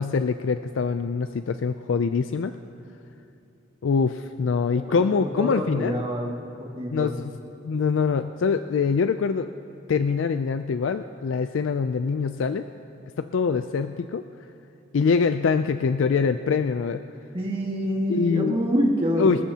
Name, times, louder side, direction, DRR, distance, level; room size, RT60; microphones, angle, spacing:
voice 1, 0.0-2.5 3.8-6.0 6.9-7.3 7.6-9.5 9.9-12.6 13.2-14.2 14.9-17.0 18.1-18.5 19.2-19.5, left 5 dB, 75° left, 9 dB, 0.4 m, -24 dB
voice 2, 4.7-7.1 17.3-19.3, equal, 30° right, -2 dB, 1.9 m, -27 dB
25.5 x 13.5 x 2.8 m, 2.9 s
head